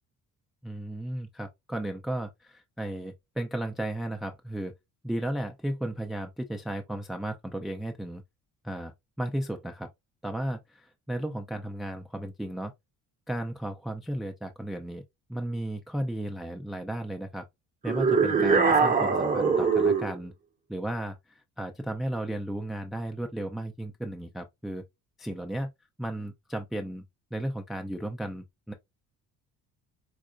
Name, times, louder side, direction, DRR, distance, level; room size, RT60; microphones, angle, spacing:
voice 1, 0.6-4.7 5.0-8.2 8.6-8.9 9.2-9.9 10.2-12.7 13.3-15.0 15.3-17.4 17.8-20.3 20.7-24.8 25.2-25.7 26.0-27.0 27.3-28.7, right 1 dB, ahead, 0.3 m, -34 dB
sound 1, 17.9-20.2, right 5 dB, 25° right, 0.7 m, -22 dB
4.7 x 2.1 x 2.4 m
cardioid pair, 85°, 34 cm